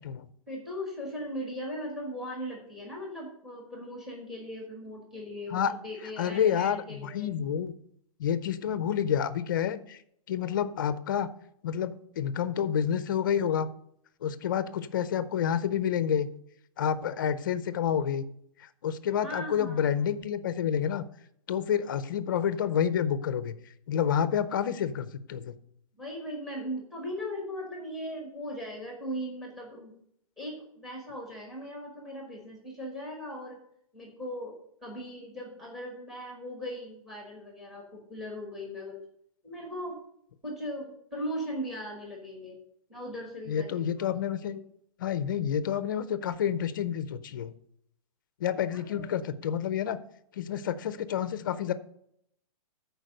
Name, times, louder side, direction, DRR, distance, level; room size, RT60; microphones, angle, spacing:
voice 1, 0.5-7.3 19.2-20.0 26.0-29.9 30.4-33.6 33.9-39.0 39.4-40.0 40.4-42.6 42.9-44.1 44.4-44.6 48.7-49.1, equal, ahead, 0 dB, 1.3 m, -38 dB
voice 2, 6.2-7.7 8.2-10.0 10.3-11.3 11.6-13.7 14.2-16.3 16.8-18.2 18.8-21.0 21.5-23.5 23.9-25.5 43.5-44.6 45.0-47.5 48.4-50.0 50.3-51.7, left 8 dB, 35° left, 14 dB, 0.5 m, -29 dB
11.0 x 4.7 x 6.5 m, 0.72 s
hypercardioid pair, 175°, 18 cm